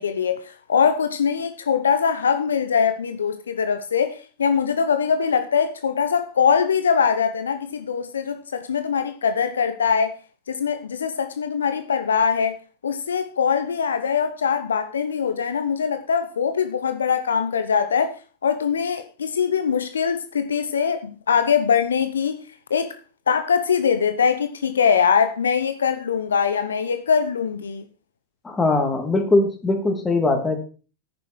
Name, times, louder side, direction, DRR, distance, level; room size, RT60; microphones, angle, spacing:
voice 1, 0.0-10.2 10.5-12.6 12.8-22.4 22.7-22.9 23.3-27.9, left 6 dB, 75° left, 0.9 m, -22 dB
voice 2, 28.4-30.6, left 2 dB, 15° left, 2.9 m, -21 dB
10.5 x 9.2 x 4.7 m
figure-of-eight pair, 90°, 0 cm